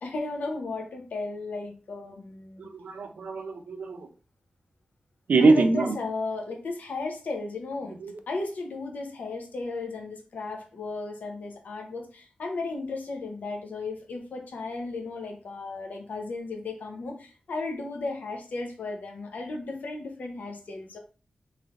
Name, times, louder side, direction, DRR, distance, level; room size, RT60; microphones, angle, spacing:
voice 1, 0.0-2.7 5.4-8.0 8.3-21.0, left 3 dB, 80° left, 3 dB, 0.8 m, -35 dB
voice 2, 2.6-4.0 5.3-5.9 8.0-8.1, right 3 dB, 70° right, 7 dB, 0.5 m, -23 dB
3.2 x 3.2 x 2.5 m, 0.36 s
wide cardioid pair, 120°, 3 cm